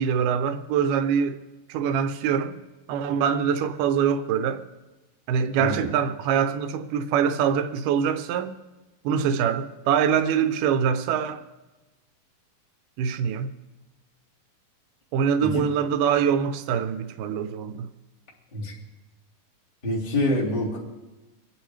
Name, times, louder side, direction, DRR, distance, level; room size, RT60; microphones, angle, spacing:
voice 1, 0.0-1.4 1.7-2.5 2.9-4.6 5.3-8.5 9.0-11.4 13.0-13.5 15.1-17.9, right 7 dB, 75° right, 2.2 m, -24 dB
voice 2, 5.6-5.9 15.4-15.6 18.5-18.8 19.8-20.8, left 1 dB, 15° left, 1.9 m, -26 dB
25.5 x 10.0 x 3.3 m
omnidirectional pair, 4.1 m